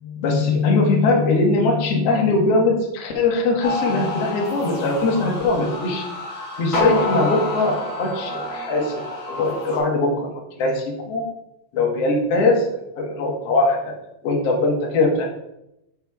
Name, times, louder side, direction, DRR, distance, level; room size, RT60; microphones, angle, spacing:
voice 1, 0.0-6.0 6.6-9.0 9.3-10.3 10.6-11.2 11.7-12.6 13.0-13.9 14.2-15.2, left 3 dB, 55° left, 0 dB, 1.8 m, -21 dB
sound 1, 3.6-9.8, left 2 dB, 80° left, 0.7 m, -28 dB
6.6 x 6.1 x 3.4 m, 0.85 s
omnidirectional pair, 4.2 m